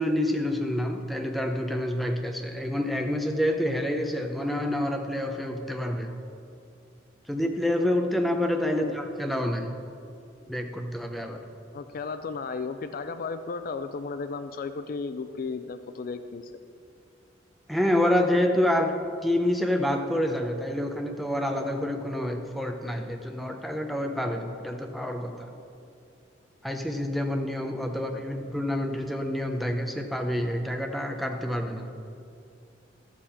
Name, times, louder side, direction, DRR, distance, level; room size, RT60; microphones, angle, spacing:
voice 1, 0.0-6.1 7.3-9.8 10.5-11.4 17.7-25.5 26.6-31.9, left 1 dB, ahead, 4 dB, 0.6 m, -28 dB
voice 2, 11.7-16.5 27.9-28.2, left 4 dB, 50° left, 10 dB, 0.4 m, -35 dB
12.5 x 7.7 x 4.2 m, 2.5 s
head